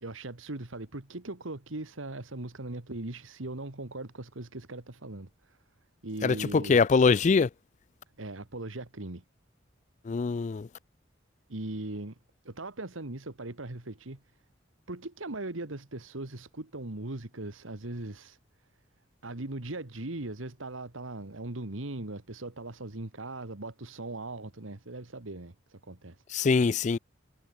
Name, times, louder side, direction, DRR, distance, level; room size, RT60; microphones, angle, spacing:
voice 1, 0.0-5.6 6.0-6.8 8.2-9.2 11.5-12.2 12.5-14.2 14.9-18.4 19.2-26.2, right 2 dB, 85° right, 1.9 m, -39 dB
voice 2, 6.2-7.5 10.1-10.7 26.3-27.0, left 5 dB, 35° left, 0.4 m, -23 dB
head